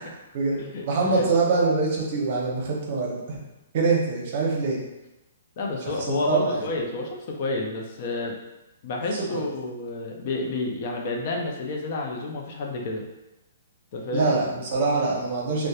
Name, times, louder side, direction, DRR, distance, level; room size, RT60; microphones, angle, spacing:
voice 1, 0.0-3.4 3.7-4.8 6.1-6.7 9.1-9.4 14.1-15.7, right 3 dB, 50° right, -2 dB, 0.7 m, -24 dB
voice 2, 0.6-1.3 5.6-8.4 8.8-13.0 13.9-14.3, left 2 dB, 45° left, 0 dB, 0.4 m, -30 dB
2.8 x 2.1 x 2.3 m, 0.98 s
hypercardioid pair, 150°, 0 cm